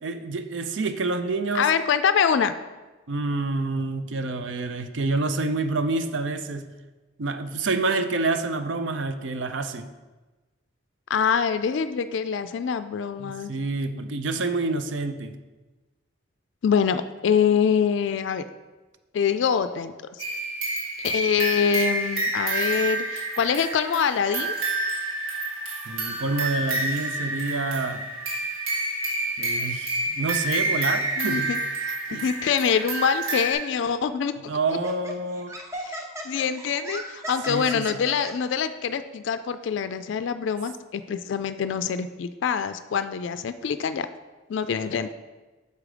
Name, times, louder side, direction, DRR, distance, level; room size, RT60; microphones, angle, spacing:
voice 1, 0.0-1.7 3.1-6.7 7.2-9.9 13.2-15.3 25.9-28.0 29.4-31.5 32.1-32.2 34.5-35.5 37.5-37.9, right 3 dB, 65° right, 9 dB, 0.5 m, -28 dB
voice 2, 1.5-2.5 11.1-13.5 16.6-18.4 19.1-19.9 21.0-24.6 31.2-31.6 31.9-34.6 35.8-36.0 36.2-44.1 44.5-45.1, left 7 dB, 65° left, 11 dB, 0.3 m, -25 dB
sound 1, 20.2-33.5, right 2 dB, 85° right, 2.1 m, -28 dB
Laughter, 33.8-34.0 34.7-38.3, right 1 dB, 15° right, 0.6 m, -36 dB
6.7 x 5.0 x 4.9 m, 1.2 s
head